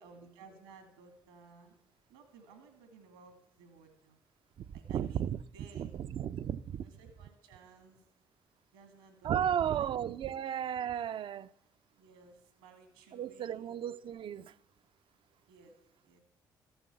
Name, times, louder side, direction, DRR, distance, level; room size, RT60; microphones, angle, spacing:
voice 1, 0.0-1.7 2.1-4.2 4.7-6.0 6.8-8.0 8.7-9.9 10.2-10.4 12.0-13.7 15.5-15.7 16.0-16.2, right 4 dB, 85° right, 2.0 m, -57 dB
voice 2, 4.6-5.4 5.8-6.9 9.2-11.5 13.1-14.5, right 9 dB, 55° right, 0.5 m, -34 dB
13.5 x 8.0 x 8.4 m
hypercardioid pair, 45°, 10 cm